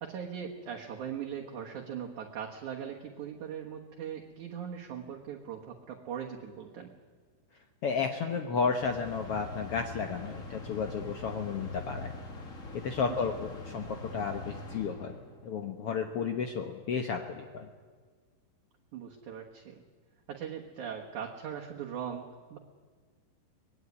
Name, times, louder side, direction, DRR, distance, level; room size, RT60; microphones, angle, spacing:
voice 1, 0.0-6.9 18.9-19.8 20.3-22.6, right 8 dB, 60° right, 0 dB, 2.5 m, -40 dB
voice 2, 7.8-12.1 12.7-15.1 15.4-17.7, left 5 dB, 85° left, 5 dB, 1.3 m, -33 dB
sound 1, 8.8-15.6, left 2 dB, 30° left, 1.6 m, -43 dB
24.5 x 19.0 x 9.7 m, 1.5 s
omnidirectional pair, 4.4 m